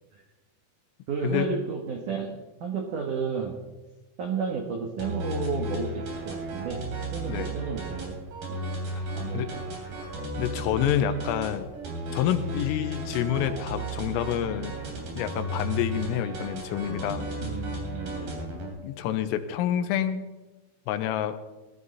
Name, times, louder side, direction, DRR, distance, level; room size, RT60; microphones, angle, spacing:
voice 1, 1.1-2.3 2.6-3.6 4.2-8.1 8.5-8.6 9.1-9.6 12.4-12.5 17.4-18.5, right 5 dB, 90° right, 2 dB, 1.7 m, -32 dB
sound 1, 5.0-18.7, right 1 dB, 50° right, 4.5 m, -34 dB
voice 2, 10.4-11.7 12.1-14.7 15.2-17.3 18.8-20.2 20.9-21.4, left 10 dB, 85° left, 9 dB, 3.6 m, -28 dB
19.0 x 13.0 x 4.2 m, 1.1 s
omnidirectional pair, 5.9 m